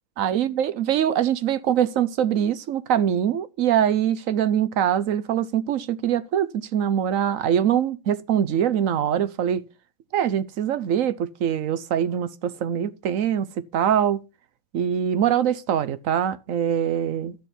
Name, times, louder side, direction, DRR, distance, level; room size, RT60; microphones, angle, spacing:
voice 1, 0.2-9.6 10.1-13.5 13.7-14.2 14.7-17.4, right 9 dB, 65° right, 0.8 m, -23 dB
12.5 x 4.3 x 8.1 m
omnidirectional pair, 2.1 m